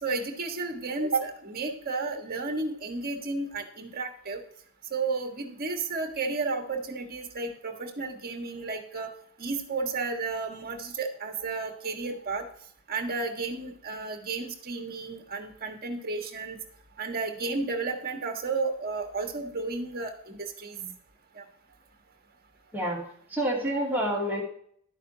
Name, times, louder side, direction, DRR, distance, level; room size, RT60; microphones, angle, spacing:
voice 1, 0.0-4.4 4.9-9.1 9.4-12.5 12.9-16.6 17.0-20.9 21.3-21.4, right 3 dB, 45° right, 4 dB, 1.5 m, -32 dB
voice 2, 23.3-24.4, right 1 dB, 10° right, -4 dB, 2.7 m, -28 dB
11.5 x 8.8 x 2.8 m, 0.63 s
head